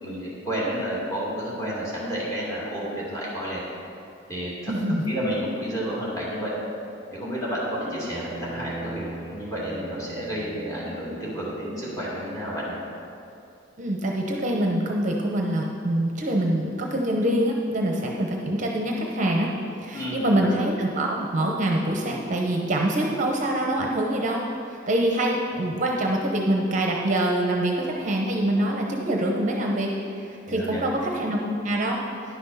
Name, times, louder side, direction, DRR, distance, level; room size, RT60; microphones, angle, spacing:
voice 1, 0.0-3.6 4.3-4.7 5.0-6.5 7.1-9.0 9.3-12.8 19.9-20.5 30.5-30.9, equal, 15° left, -7 dB, 2.4 m, -30 dB
voice 2, 4.7-5.0 13.8-19.5 19.8-24.4 24.7-29.9 30.2-32.0, right 1 dB, 40° right, 0 dB, 0.7 m, -25 dB
Bowed string instrument, 7.9-12.3, right 1 dB, 65° left, 1.9 m, -40 dB
10.0 x 6.0 x 5.5 m, 2.6 s
head